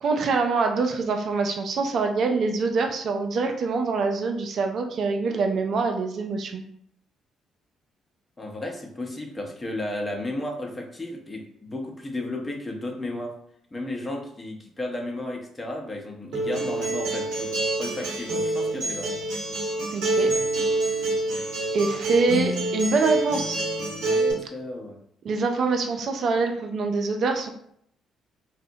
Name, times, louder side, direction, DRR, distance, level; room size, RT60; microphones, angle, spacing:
voice 1, 0.0-6.6 19.9-20.3 21.7-23.6 25.2-27.5, right 4 dB, 60° right, 4 dB, 0.3 m, -25 dB
voice 2, 8.4-13.3 13.7-19.1 24.0-25.0, left 1 dB, 25° left, 1 dB, 0.7 m, -33 dB
Acoustic guitar, 16.3-24.3, right 2 dB, 75° right, 0.8 m, -27 dB
2.7 x 2.1 x 2.7 m, 0.69 s
hypercardioid pair, 50°, 0 cm